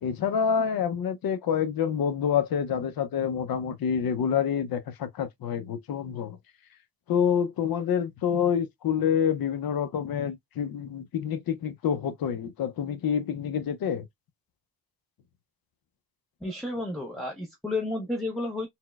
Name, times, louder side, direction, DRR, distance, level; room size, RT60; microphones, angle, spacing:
voice 1, 0.0-6.4 7.1-14.1, left 8 dB, 60° left, 0.6 m, -27 dB
voice 2, 16.4-18.7, left 2 dB, ahead, 0.5 m, -31 dB
4.1 x 2.1 x 2.2 m
cardioid pair, 95°, 41 cm